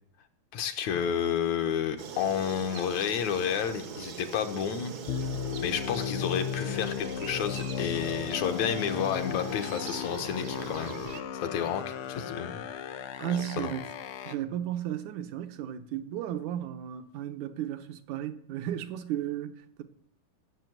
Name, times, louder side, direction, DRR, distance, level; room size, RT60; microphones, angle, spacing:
voice 1, 0.5-4.9 5.6-11.0 11.4-12.6 13.6-13.7, left 8 dB, 70° left, 2.4 m, -30 dB
sound 1, 2.0-11.2, right 6 dB, 55° right, 1.1 m, -41 dB
sound 2, 5.1-14.3, left 8 dB, 85° left, 1.2 m, -36 dB
voice 2, 13.2-13.9 14.3-19.8, right 11 dB, 80° right, 2.4 m, -34 dB
15.0 x 6.8 x 9.3 m
omnidirectional pair, 3.5 m